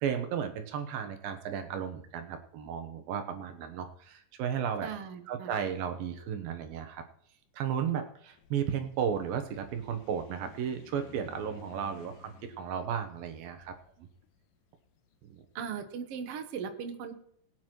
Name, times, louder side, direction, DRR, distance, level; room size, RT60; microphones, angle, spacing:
voice 1, 0.0-4.9 5.3-7.0 7.5-14.1 15.2-15.4, right 8 dB, 85° right, 6 dB, 2.9 m, -34 dB
voice 2, 4.8-5.6 15.6-17.1, right 7 dB, 60° right, 7 dB, 1.6 m, -38 dB
sound 1, 8.3-15.5, left 8 dB, 75° left, 2.4 m, -55 dB
21.5 x 9.4 x 3.1 m, 0.66 s
omnidirectional pair, 4.1 m